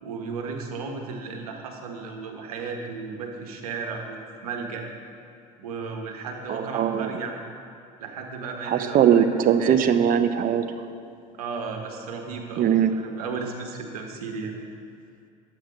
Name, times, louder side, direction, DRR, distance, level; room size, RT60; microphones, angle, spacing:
voice 1, 0.0-4.8 5.6-7.4 8.0-9.2 9.6-9.8 11.3-14.5, right 4 dB, 90° right, 2 dB, 1.4 m, -34 dB
voice 2, 6.5-7.1 8.7-10.6 12.6-12.9, right 9 dB, 50° right, 9 dB, 0.8 m, -20 dB
10.5 x 8.0 x 5.2 m, 2.6 s
hypercardioid pair, 75°, 19 cm